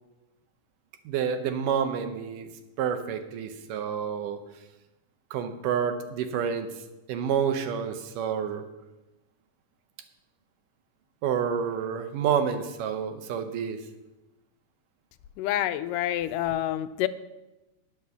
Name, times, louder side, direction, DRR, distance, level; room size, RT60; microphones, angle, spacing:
voice 1, 1.1-2.5 2.8-4.4 5.3-6.8 7.1-8.6 11.2-13.8, right 7 dB, 85° right, 8 dB, 2.5 m, -29 dB
voice 2, 15.4-17.1, left 13 dB, 85° left, 12 dB, 2.2 m, -27 dB
10.5 x 7.2 x 6.6 m, 1.0 s
omnidirectional pair, 3.7 m